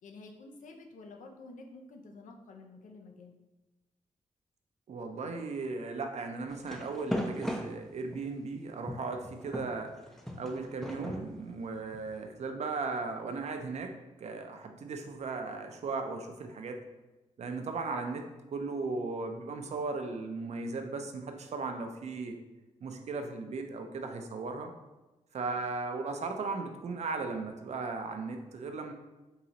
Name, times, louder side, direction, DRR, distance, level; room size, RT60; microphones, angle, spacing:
voice 1, 0.0-3.4 25.6-25.7, left 3 dB, 75° left, 3 dB, 0.5 m, -50 dB
voice 2, 4.9-9.9 10.3-13.9 14.2-16.8 17.4-22.4 22.8-24.7 25.3-28.9, right 3 dB, 55° right, 5 dB, 0.5 m, -37 dB
sound 1, 6.5-8.4 8.9-12.2, equal, 5° left, 0.4 m, -38 dB
3.8 x 3.0 x 2.9 m, 1.1 s
wide cardioid pair, 115°, 13 cm